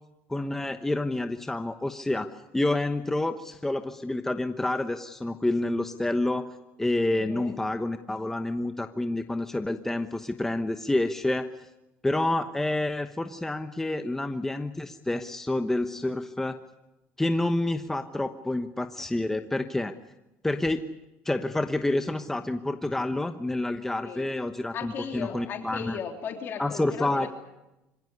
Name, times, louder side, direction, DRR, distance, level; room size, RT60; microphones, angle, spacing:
voice 1, 0.3-2.3 2.5-6.5 6.8-11.5 12.0-16.6 17.2-19.9 20.4-20.8 21.2-26.0 26.6-27.3, left 2 dB, 5° left, 7 dB, 1.1 m, -28 dB
voice 2, 7.1-7.6 24.0-24.3 24.7-27.3, left 7 dB, 45° left, 3 dB, 3.2 m, -36 dB
25.5 x 16.5 x 9.8 m, 0.97 s
cardioid pair, 120°, 5 cm